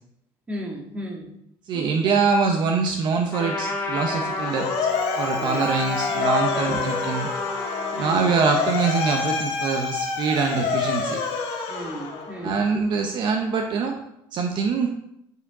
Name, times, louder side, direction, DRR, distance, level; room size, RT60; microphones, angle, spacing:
voice 1, 0.5-1.3 1.7-1.9 5.4-5.6 6.7-6.8 7.9-8.3 11.7-12.8, equal, 15° right, -1 dB, 1.6 m, -34 dB
voice 2, 1.7-4.9 5.2-7.3 8.0-11.2 12.4-13.9 14.3-14.9, right 5 dB, 50° right, 3 dB, 0.7 m, -24 dB
Trumpet, 3.3-8.2, left 3 dB, 25° left, 1.4 m, -30 dB
Motor vehicle (road) / Siren, 4.0-12.6, left 5 dB, 70° left, 1.4 m, -28 dB
8.0 x 4.8 x 4.9 m, 0.77 s
cardioid pair, 175°, 10 cm